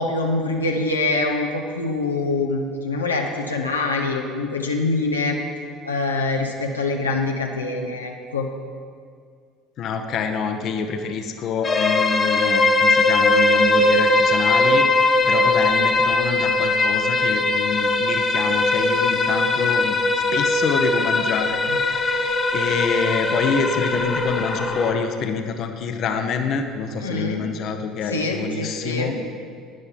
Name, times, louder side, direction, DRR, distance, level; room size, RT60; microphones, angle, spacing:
voice 1, 0.0-5.4 5.9-8.5 21.7-21.8 22.6-22.8 27.0-27.4 28.1-29.2, left 3 dB, 85° left, 1 dB, 1.1 m, -24 dB
voice 2, 9.8-29.1, left 5 dB, 50° left, 6 dB, 1.0 m, -27 dB
sound 1, 11.6-24.9, left 2 dB, 30° left, 1.5 m, -20 dB
13.0 x 9.4 x 5.8 m, 2.1 s
figure-of-eight pair, 65°, 0 cm